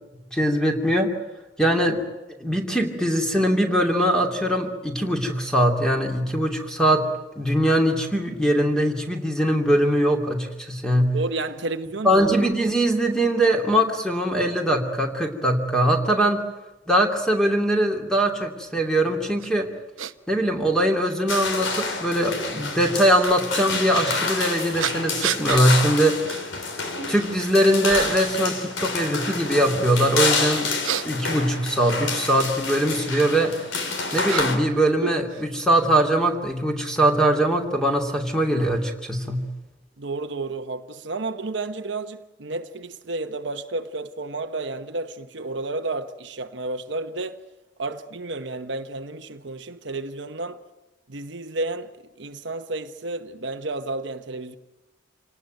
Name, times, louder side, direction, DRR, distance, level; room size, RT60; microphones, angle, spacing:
voice 1, 0.3-1.1 1.6-2.0 2.4-7.1 7.4-11.2 12.0-16.5 16.9-19.7 20.3-26.2 27.1-30.7 31.0-33.5 34.1-39.5, right 1 dB, 5° left, 2.8 m, -21 dB
voice 2, 11.1-12.2 40.0-47.4 47.8-50.6 51.1-51.9 52.2-54.6, right 2 dB, 65° right, 1.0 m, -31 dB
sound 1, 19.4-19.5 20.0-20.1 21.0-21.1 23.2-23.4 24.8-25.6 26.2-26.4 26.9-27.4 27.8-28.3 30.5-32.5 33.4-34.7 35.0-35.9, right 7 dB, 90° right, 0.9 m, -31 dB
sound 2, 21.3-34.6, left 4 dB, 75° left, 3.7 m, -28 dB
27.0 x 18.5 x 9.2 m
head